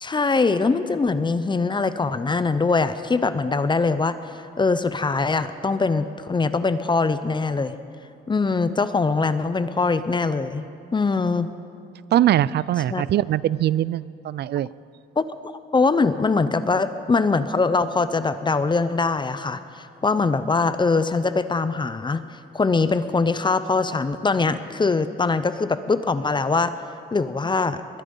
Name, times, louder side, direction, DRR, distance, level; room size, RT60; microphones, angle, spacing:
voice 1, 0.0-4.2 4.6-7.7 8.3-10.6 10.9-11.5 12.9-13.0 15.2-15.3 15.7-19.6 20.0-22.2 22.5-26.7 27.1-27.8, left 4 dB, 25° left, 12 dB, 0.7 m, -22 dB
voice 2, 12.1-14.7, right 12 dB, 60° right, 20 dB, 0.4 m, -21 dB
21.5 x 10.0 x 5.5 m, 2.4 s
cardioid pair, 90°, 20 cm